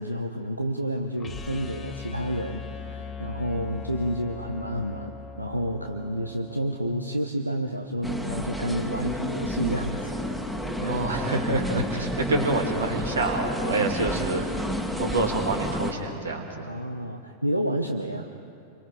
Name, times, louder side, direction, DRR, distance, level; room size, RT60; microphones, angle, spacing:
voice 1, 0.0-10.2 10.8-11.0 13.8-13.9 16.7-18.3, equal, 90° right, 4 dB, 1.0 m, -30 dB
sound 1, 1.2-7.3, left 5 dB, 20° left, 2.2 m, -40 dB
sound 2, 8.0-15.9, equal, 5° right, 2.1 m, -30 dB
voice 2, 10.8-14.7 15.0-16.7, right 2 dB, 70° right, 3 dB, 2.8 m, -27 dB
28.5 x 24.0 x 5.0 m, 2.5 s
figure-of-eight pair, 90°, 0 cm